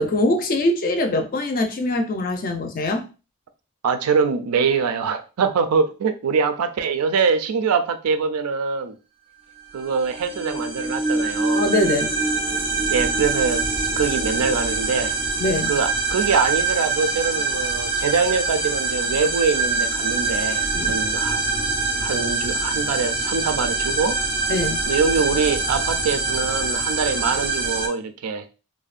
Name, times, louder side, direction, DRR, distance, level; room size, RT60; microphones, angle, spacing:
voice 1, 0.0-3.1 11.6-12.1 15.4-15.7 20.7-21.0 24.5-24.8, left 1 dB, 40° left, 0.4 m, -22 dB
voice 2, 3.8-9.0 9.7-11.6 12.9-13.7 14.0-15.2 15.7-21.4 22.0-24.2 24.9-28.4, right 5 dB, 90° right, 0.4 m, -23 dB
sound 1, 9.8-27.9, right 3 dB, 25° right, 0.4 m, -24 dB
2.6 x 2.1 x 2.4 m
head